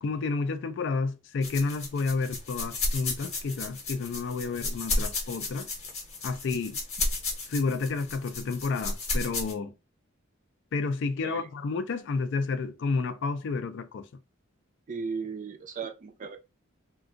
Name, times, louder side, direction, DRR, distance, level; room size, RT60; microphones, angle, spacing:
voice 1, 0.0-5.7 6.2-6.8 7.5-9.7 10.7-14.1, left 4 dB, 60° left, 0.4 m, -30 dB
sound 1, 1.4-9.5, left 2 dB, 30° left, 0.8 m, -33 dB
voice 2, 14.9-16.4, right 5 dB, 40° right, 0.4 m, -36 dB
2.4 x 2.3 x 3.7 m
head